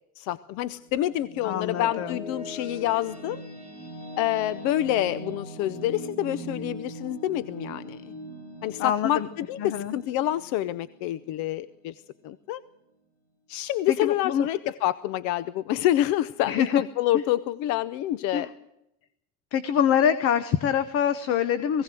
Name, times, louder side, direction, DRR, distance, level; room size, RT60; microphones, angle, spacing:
voice 1, 0.2-3.4 4.2-8.1 8.6-11.9 12.2-12.6 13.5-18.5, left 13 dB, 60° left, 16 dB, 0.7 m, -27 dB
sound 1, 0.6-12.0, equal, 20° left, 5.1 m, -41 dB
voice 2, 1.4-2.2 8.8-9.3 9.6-9.9 13.9-14.5 16.4-16.8 17.1-17.2 18.3-18.5 19.5-21.8, left 8 dB, 45° left, 14 dB, 1.0 m, -25 dB
20.0 x 17.0 x 7.7 m, 0.86 s
cardioid pair, 180°, 33 cm